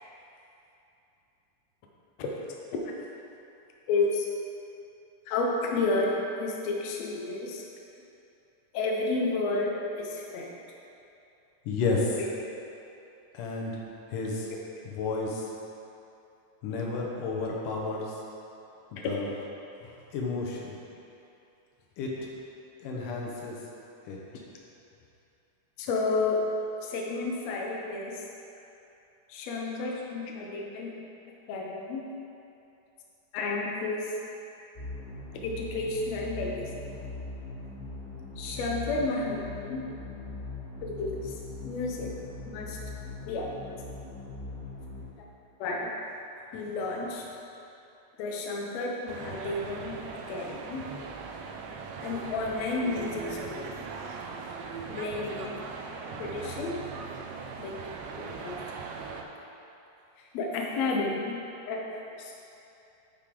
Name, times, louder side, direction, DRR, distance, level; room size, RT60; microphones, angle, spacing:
voice 1, 3.9-4.3 5.3-7.6 8.7-10.6 12.2-12.3 14.5-14.6 15.0-15.1 19.0-19.4 19.8-20.0 25.8-26.4 26.8-28.3 29.3-30.9 31.5-32.0 33.3-34.2 35.4-36.7 38.4-39.8 40.8-42.1 42.4-42.8 43.3-43.5 45.6-45.9 46.5-47.3 48.2-50.0 50.3-50.8 52.0-53.8 54.9-55.6 56.2-56.8 57.6-57.8 58.2-58.6 60.2-61.4 61.7-62.3, left 3 dB, 70° left, -1 dB, 1.9 m, -31 dB
voice 2, 11.7-12.1 13.3-13.7 14.1-14.5 15.0-15.4 16.6-18.0 19.1-19.2 20.1-20.7 22.0-22.1 22.8-23.6 24.1-24.2, left 3 dB, 90° left, -2 dB, 2.6 m, -31 dB
sound 1, 34.8-45.0, left 3 dB, 50° left, 0.6 m, -40 dB
sound 2, 49.1-59.2, right 5 dB, 90° right, 1.4 m, -39 dB
8.8 x 6.7 x 3.8 m, 2.8 s
omnidirectional pair, 3.6 m